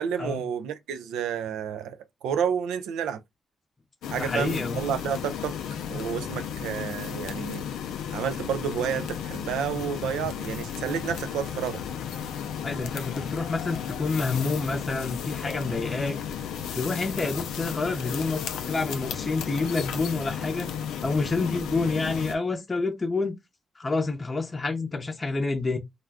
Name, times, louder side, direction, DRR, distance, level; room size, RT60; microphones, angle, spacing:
voice 1, 0.0-3.2 4.1-5.5 5.9-7.6 8.1-11.8, right 8 dB, 90° right, 0.3 m, -30 dB
sound 1, 4.0-22.4, left 8 dB, 85° left, 0.3 m, -34 dB
voice 2, 4.2-4.8 12.6-16.2 16.7-20.7 21.0-23.4 23.8-25.8, left 3 dB, 30° left, 0.6 m, -28 dB
2.3 x 2.2 x 3.4 m
supercardioid pair, 60°, 0 cm